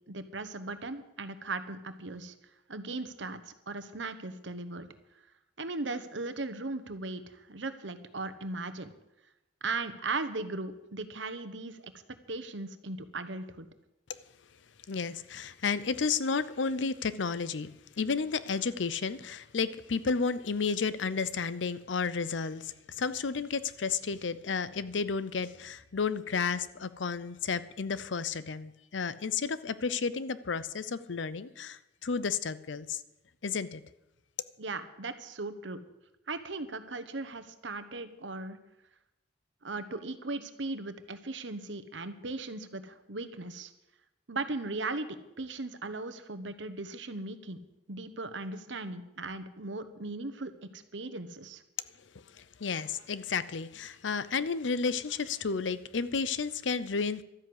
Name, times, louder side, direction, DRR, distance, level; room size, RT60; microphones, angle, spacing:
voice 1, 0.1-2.3 2.7-4.9 5.6-8.9 9.6-11.9 12.3-13.7 34.6-35.8 36.3-38.6 39.6-43.7 44.3-47.6 47.9-51.6, right 3 dB, 80° right, 1.1 m, -38 dB
voice 2, 14.9-33.0 33.4-33.8 52.3-57.2, left 5 dB, 90° left, 0.7 m, -32 dB
12.5 x 9.6 x 7.9 m
head